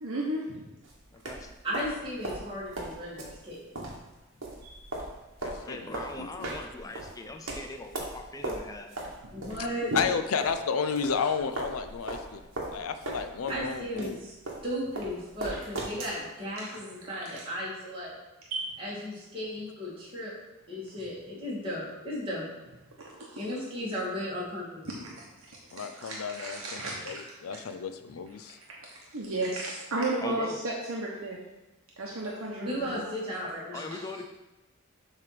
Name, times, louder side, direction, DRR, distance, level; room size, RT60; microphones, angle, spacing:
voice 1, 0.0-0.6 9.3-9.6 9.9-10.0 11.2-11.3 15.5-15.6 16.6-17.4 18.5-18.7 23.2-23.3 24.9-27.6 29.1-31.4 32.0-33.0, right 2 dB, 75° right, -3 dB, 1.0 m, -34 dB
sound 1, 0.8-10.6 11.0-16.2, right 2 dB, 60° right, 1.5 m, -38 dB
voice 2, 1.1-1.5 5.7-8.9 30.2-30.6 33.7-34.3, left 2 dB, 15° left, 4 dB, 0.4 m, -40 dB
voice 3, 1.6-3.9 4.6-4.8 9.3-10.0 13.5-14.3 14.6-18.2 18.8-20.3 20.7-22.5 23.3-25.0 32.6-33.9, equal, 25° right, -8 dB, 2.5 m, -35 dB
voice 4, 5.4-6.5 9.5-9.6 9.9-12.5 12.7-14.2 25.7-28.6, left 6 dB, 80° left, 9 dB, 0.5 m, -32 dB
7.4 x 3.3 x 6.0 m, 1.0 s
head